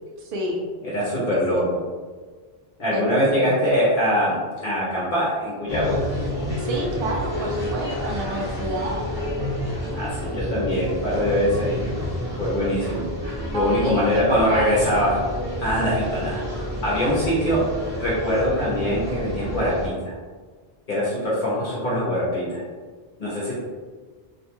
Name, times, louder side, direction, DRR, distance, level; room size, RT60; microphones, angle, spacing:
voice 1, 0.2-0.7 1.1-1.7 2.9-3.5 6.6-9.1 13.5-14.8, right 1 dB, 65° right, -1 dB, 0.7 m, -30 dB
voice 2, 0.8-1.6 2.8-6.0 9.9-12.0 12.4-15.1 15.6-16.4 16.8-17.6 18.0-20.2 20.9-22.6 23.2-23.5, equal, 60° left, -8 dB, 0.9 m, -23 dB
sound 1, 5.7-19.9, equal, 35° right, 1.1 m, -29 dB
2.6 x 2.2 x 2.8 m, 1.5 s
omnidirectional pair, 1.0 m